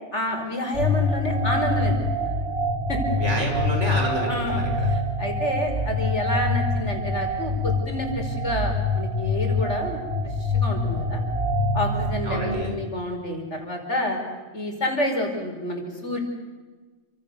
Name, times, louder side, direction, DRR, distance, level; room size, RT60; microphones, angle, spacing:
voice 1, 0.1-3.0 4.3-11.2 11.7-14.2 14.5-16.2, left 1 dB, 80° left, 2 dB, 5.5 m, -29 dB
sound 1, 0.7-12.6, left 2 dB, 65° right, 3.5 m, -25 dB
voice 2, 3.2-4.9 12.2-12.7, equal, 90° right, 1 dB, 6.9 m, -28 dB
29.5 x 26.0 x 6.9 m, 1.3 s
omnidirectional pair, 1.2 m